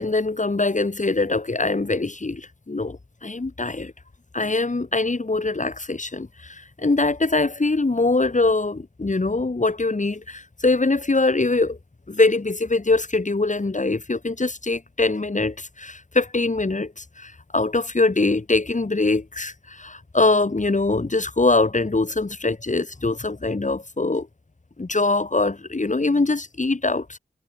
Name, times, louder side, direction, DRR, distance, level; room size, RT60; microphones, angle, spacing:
voice 1, 0.0-3.9 4.3-11.8 12.1-24.3 24.8-27.2, left 3 dB, 40° left, 4.5 m, -23 dB
wide cardioid pair, 85°, 19 cm